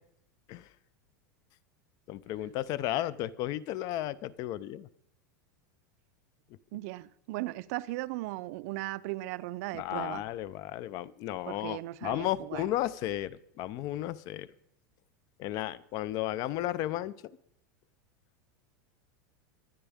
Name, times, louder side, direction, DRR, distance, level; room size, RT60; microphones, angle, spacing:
voice 1, 2.1-4.9 9.7-14.5 15.4-17.2, left 14 dB, 40° left, 0.5 m, -34 dB
voice 2, 6.7-10.2 11.4-12.7, right 18 dB, 55° right, 0.5 m, -37 dB
23.0 x 9.7 x 3.5 m
supercardioid pair, 155°, 10 cm